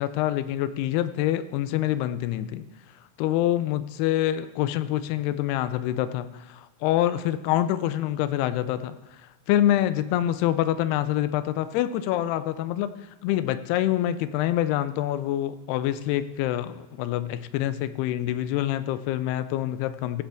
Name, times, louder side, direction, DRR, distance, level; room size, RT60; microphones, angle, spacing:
voice 1, 0.0-2.6 3.2-9.2 9.5-12.9 13.2-20.2, left 13 dB, 85° left, 12 dB, 2.6 m, -26 dB
15.5 x 10.0 x 3.5 m, 1.1 s
omnidirectional pair, 4.6 m